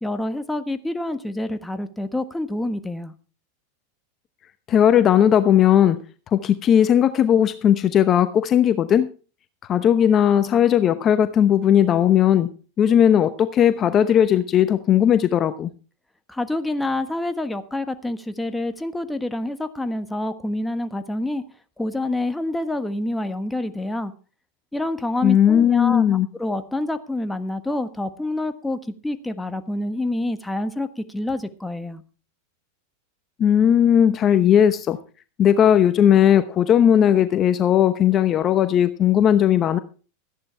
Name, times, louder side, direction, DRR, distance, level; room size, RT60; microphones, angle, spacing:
voice 1, 0.0-3.1 16.3-21.4 21.8-24.1 24.7-32.0, left 1 dB, 5° left, 9 dB, 1.4 m, -27 dB
voice 2, 4.7-6.0 6.3-9.1 9.7-12.5 12.8-15.7 25.2-26.3 33.4-35.0 35.4-39.8, left 9 dB, 35° left, 11 dB, 0.9 m, -17 dB
14.0 x 10.5 x 4.5 m, 0.36 s
hypercardioid pair, 100°, 0 cm